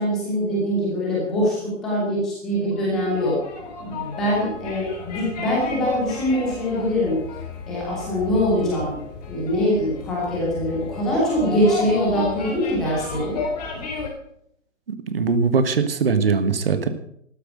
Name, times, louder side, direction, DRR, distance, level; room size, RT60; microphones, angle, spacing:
voice 1, 0.0-3.4 3.8-7.2 7.7-8.9 9.3-13.4, equal, ahead, -4 dB, 0.5 m, -23 dB
sound 1, 2.7-14.1, left 4 dB, 30° left, 3.4 m, -33 dB
voice 2, 15.1-16.9, right 5 dB, 45° right, 10 dB, 1.5 m, -20 dB
13.0 x 12.0 x 6.6 m, 0.72 s
figure-of-eight pair, 135°, 40 cm